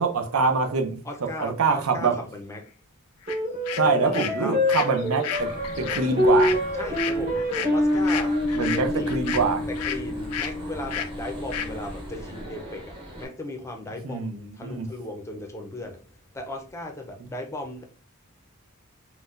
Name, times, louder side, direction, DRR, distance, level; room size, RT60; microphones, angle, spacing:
voice 1, 0.0-1.0 1.4-2.2 3.7-5.5 5.8-6.6 8.5-9.7 14.0-14.9, right 4 dB, 70° right, 0.5 m, -24 dB
voice 2, 1.0-2.7 3.8-4.6 6.8-9.1 9.7-16.0 16.3-17.8, left 1 dB, 15° left, 0.5 m, -37 dB
sound 1, 3.3-3.4 3.6-10.0 10.3-10.5 10.9-11.1 11.5-11.7, left 9 dB, 85° left, 0.4 m, -32 dB
sound 2, 3.3-11.9, left 1 dB, 45° right, 1.0 m, -26 dB
sound 3, 5.3-13.2, right 1 dB, 25° right, 0.8 m, -39 dB
3.9 x 2.1 x 2.4 m
head